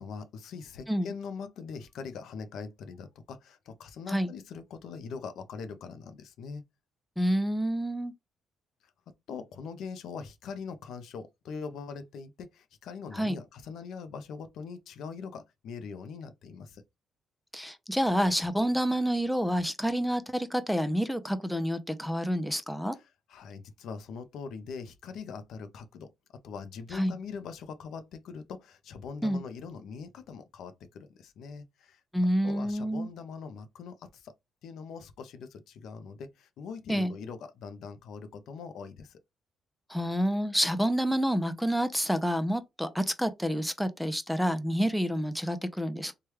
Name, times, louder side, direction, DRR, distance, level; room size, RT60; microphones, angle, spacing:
voice 1, 0.0-6.6 9.3-16.8 22.9-26.1 26.4-32.0 32.4-34.3 34.6-39.2 44.8-44.9, left 5 dB, 75° left, 0.5 m, -42 dB
voice 2, 7.2-8.1 13.1-13.4 17.5-23.0 26.9-27.2 29.2-29.4 32.1-33.1 36.9-37.1 39.9-46.1, equal, ahead, 0.4 m, -28 dB
3.2 x 2.2 x 3.0 m
cardioid pair, 90°, 0 cm